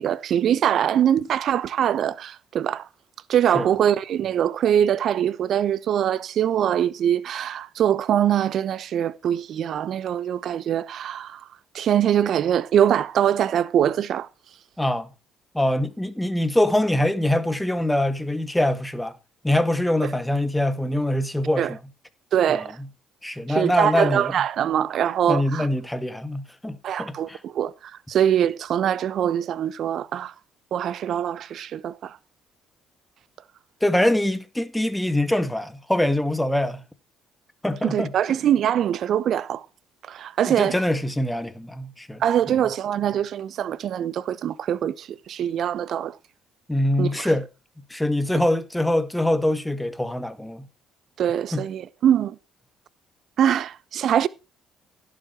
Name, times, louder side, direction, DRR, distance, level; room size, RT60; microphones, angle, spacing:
voice 1, 0.0-2.9 3.3-11.4 11.7-14.3 21.6-21.7 22.3-22.7 23.5-25.7 26.8-27.7 28.1-30.3 30.7-32.2 37.8-39.6 40.1-40.8 42.2-46.2 47.0-47.1 51.2-52.4 53.4-54.3, right 10 dB, 55° right, 0.8 m, -23 dB
voice 2, 14.8-15.1 15.5-19.2 19.4-21.8 22.5-22.9 23.2-24.4 25.3-27.4 33.8-36.8 37.6-38.1 40.5-42.5 46.7-47.5 47.9-50.7 51.5-51.6, left 1 dB, 5° left, 1.8 m, -24 dB
16.5 x 7.7 x 4.6 m
figure-of-eight pair, 50°, 0 cm